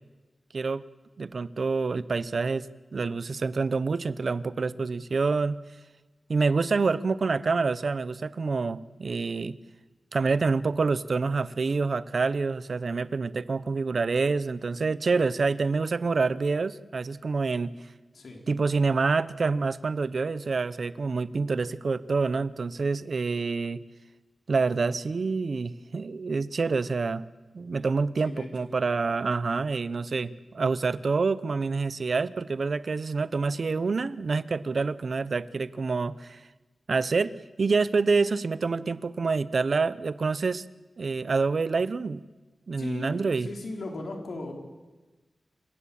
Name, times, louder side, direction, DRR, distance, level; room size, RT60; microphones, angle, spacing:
voice 1, 1.2-2.7 2.9-5.6 6.3-9.6 10.1-17.7 18.5-23.8 24.5-27.2 27.5-36.4 36.9-40.6 41.0-42.2 42.7-43.5, right 4 dB, 60° right, 16 dB, 0.8 m, -27 dB
voice 2, 42.8-43.1 43.4-44.5, left 2 dB, 75° left, 2 dB, 4.3 m, -37 dB
28.0 x 15.5 x 8.7 m, 1.2 s
wide cardioid pair, 115°, 0 cm